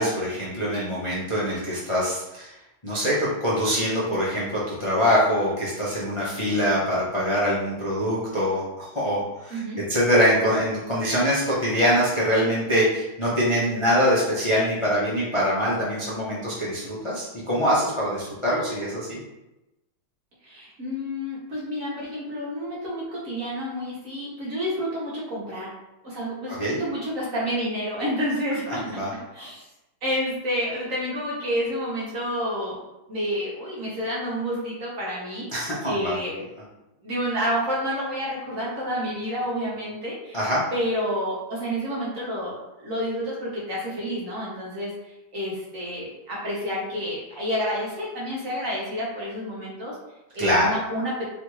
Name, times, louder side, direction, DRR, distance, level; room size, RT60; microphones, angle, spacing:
voice 1, 0.0-2.5 2.8-19.2 26.5-26.7 28.7-29.1 35.5-36.1 40.3-40.6 50.4-50.7, equal, 40° left, -8 dB, 0.4 m, -24 dB
voice 2, 20.4-25.7 26.0-29.6 30.0-32.8 33.1-36.4 37.0-40.4 40.7-50.0 50.3-51.2, equal, 45° right, -6 dB, 1.3 m, -29 dB
4.1 x 3.3 x 3.1 m, 0.96 s
omnidirectional pair, 2.4 m